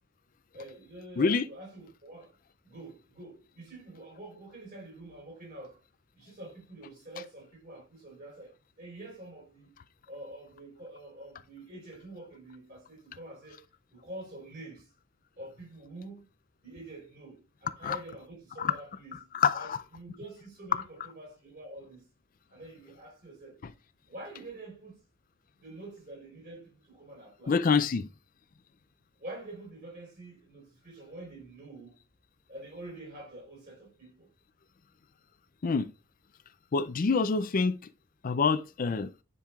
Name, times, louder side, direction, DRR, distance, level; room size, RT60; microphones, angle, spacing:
voice 1, 0.5-2.4 2.6-5.8 6.1-9.7 10.1-13.6 13.9-14.9 15.4-16.3 16.6-19.3 19.5-22.1 22.5-23.6 24.1-25.0 25.6-27.6 29.2-32.0 32.5-34.3, right 2 dB, 45° right, 4.4 m, -46 dB
voice 2, 19.3-19.8 27.5-28.1 35.6-35.9 36.7-37.8 38.2-39.1, left 5 dB, 40° left, 0.4 m, -26 dB
10.0 x 5.3 x 2.3 m
head